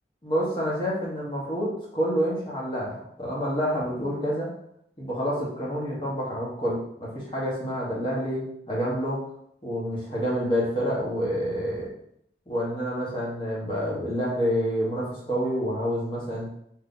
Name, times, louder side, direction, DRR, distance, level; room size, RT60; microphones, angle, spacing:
voice 1, 0.2-4.5 5.0-9.2 9.6-11.9 12.5-16.5, equal, 30° left, -5 dB, 1.3 m, -28 dB
3.8 x 3.2 x 3.9 m, 0.71 s
head